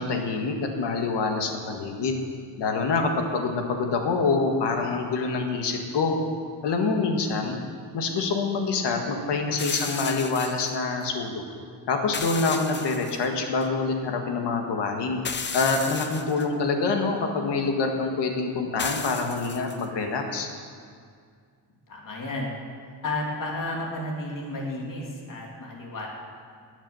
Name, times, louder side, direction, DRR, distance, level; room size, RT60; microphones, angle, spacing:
voice 1, 0.0-2.2 2.6-6.1 6.6-7.6 7.9-11.4 11.9-15.2 15.5-20.5, left 4 dB, 85° left, 3 dB, 1.9 m, -26 dB
sound 1, 9.6-10.8 12.1-13.3 13.6-13.7 15.2-16.5 18.8-19.9, left 5 dB, 25° left, 0.7 m, -34 dB
voice 2, 21.9-22.5 23.0-26.1, left 2 dB, 50° left, -2 dB, 2.9 m, -32 dB
20.0 x 7.3 x 7.1 m, 2.1 s
wide cardioid pair, 150°, 41 cm